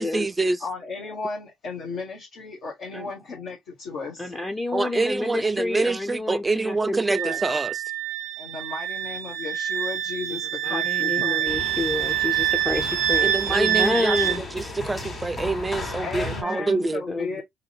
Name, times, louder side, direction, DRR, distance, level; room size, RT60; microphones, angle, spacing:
voice 1, 0.0-0.6 4.7-7.8 13.2-14.2 14.5-17.0, right 3 dB, 20° right, 0.4 m, -26 dB
voice 2, 0.6-4.3 8.4-11.6 16.0-17.4, left 4 dB, 75° left, 1.6 m, -35 dB
voice 3, 4.2-7.4 10.6-14.4 16.8-17.4, left 2 dB, 25° left, 0.6 m, -29 dB
Wind instrument woodwind instrument, 7.1-14.4, right 11 dB, 85° right, 0.4 m, -26 dB
sound 1, 11.4-16.4, left 2 dB, 45° left, 2.3 m, -35 dB
3.5 x 3.0 x 3.2 m
supercardioid pair, 75°, 0 cm